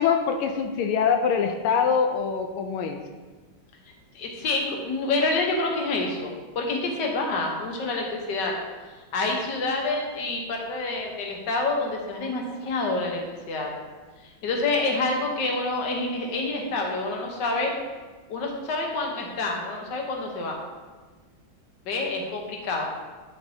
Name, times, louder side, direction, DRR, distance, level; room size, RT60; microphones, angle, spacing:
voice 1, 0.0-3.0, left 6 dB, 90° left, 5 dB, 1.4 m, -24 dB
voice 2, 4.1-8.5 9.1-13.7 14.2-17.7 18.3-20.5 21.9-22.9, left 3 dB, 60° left, 1 dB, 1.6 m, -27 dB
10.0 x 5.4 x 2.8 m, 1.3 s
omnidirectional pair, 2.2 m